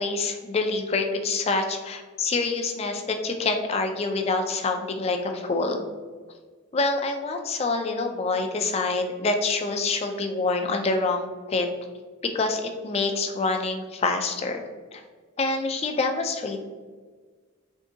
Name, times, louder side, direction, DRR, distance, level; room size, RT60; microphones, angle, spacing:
voice 1, 0.0-5.8 6.7-11.7 12.2-14.6 14.9-15.0 15.4-16.6, left 3 dB, 30° left, 5 dB, 0.3 m, -26 dB
3.6 x 2.6 x 3.8 m, 1.5 s
head